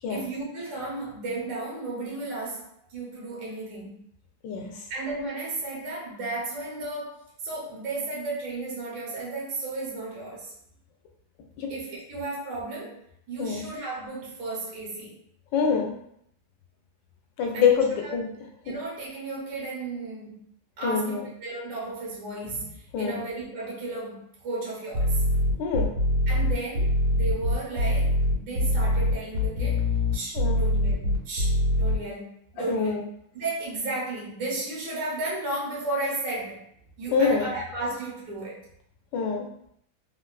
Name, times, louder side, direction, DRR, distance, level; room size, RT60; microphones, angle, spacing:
voice 1, 0.1-4.0 4.9-10.5 11.7-15.2 17.5-17.7 18.0-18.1 18.6-20.5 20.8-25.2 26.3-29.8 30.1-33.0 33.3-36.6 37.0-38.6, right 2 dB, 70° right, -5 dB, 1.5 m, -34 dB
voice 2, 4.4-4.8 11.6-11.7 13.4-13.7 15.5-16.0 17.4-18.3 18.7-18.8 20.8-21.3 22.9-23.2 25.6-25.9 30.3-30.6 32.6-33.0 37.1-37.5 39.1-39.5, left 6 dB, 75° left, 1 dB, 1.2 m, -25 dB
sound 1, 24.9-32.0, left 1 dB, 85° right, 1.5 m, -23 dB
3.5 x 2.3 x 2.3 m, 0.69 s
omnidirectional pair, 2.3 m